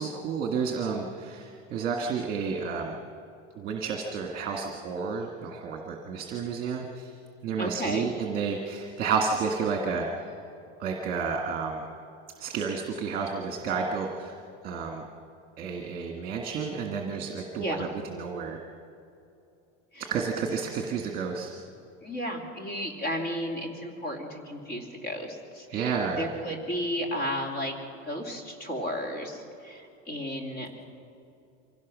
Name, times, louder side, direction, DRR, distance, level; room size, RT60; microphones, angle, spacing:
voice 1, 0.0-3.0 3.5-7.1 7.4-10.3 10.8-11.9 12.4-14.4 14.6-15.0 15.6-18.6 20.0-21.6 25.7-26.2, right 5 dB, 30° right, 2 dB, 1.7 m, -31 dB
voice 2, 7.6-8.1 17.5-17.9 19.9-20.1 22.0-27.7 28.1-30.7, equal, 35° left, 2 dB, 2.9 m, -33 dB
25.0 x 17.0 x 6.2 m, 2.7 s
cardioid pair, 175°, 32 cm